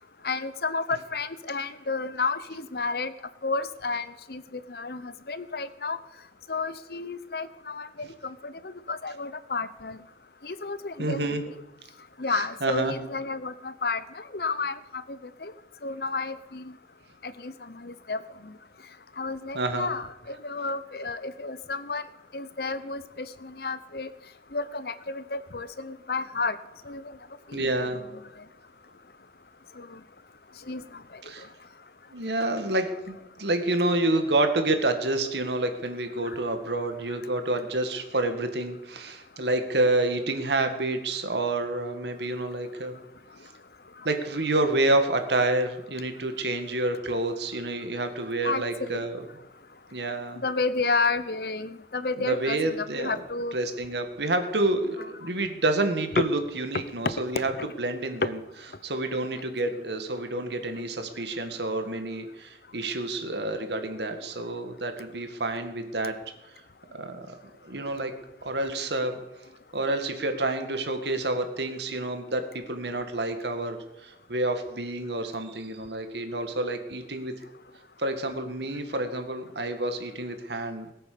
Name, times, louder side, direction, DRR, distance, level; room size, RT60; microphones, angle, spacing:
voice 1, 0.2-3.1 3.4-6.0 6.5-10.0 10.4-11.5 12.2-15.5 15.8-16.7 17.2-18.5 19.2-22.0 22.3-24.1 24.5-26.6 26.9-27.2 27.5-28.1 29.8-30.0 30.7-30.8 31.1-31.2 36.3-36.4 48.4-49.0 50.4-53.6 56.2-56.3 57.0-57.2 57.6-57.7, left 3 dB, 60° left, 14 dB, 0.9 m, -31 dB
voice 2, 11.0-11.4 12.3-13.0 19.5-19.9 27.5-28.0 31.3-31.5 32.1-43.0 44.0-49.2 49.9-50.4 52.2-53.2 53.5-57.5 57.8-58.4 58.8-66.2 66.9-67.4 67.6-68.1 68.4-69.2 69.7-77.3 78.0-80.9, right 2 dB, 75° right, 7 dB, 2.0 m, -28 dB
20.5 x 8.8 x 6.9 m, 0.95 s
head